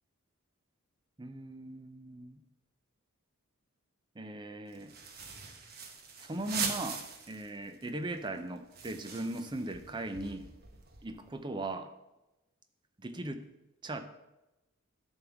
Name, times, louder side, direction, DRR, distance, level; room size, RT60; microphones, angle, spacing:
voice 1, 1.2-2.4 4.2-4.9 6.2-10.5 11.0-11.9 13.0-13.5 13.8-14.0, right 2 dB, 20° right, 7 dB, 0.6 m, -39 dB
sound 1, 4.7-7.5 7.8-7.9 8.2-11.3, right 5 dB, 45° right, 1.1 m, -41 dB
10.5 x 3.6 x 7.1 m, 0.98 s
head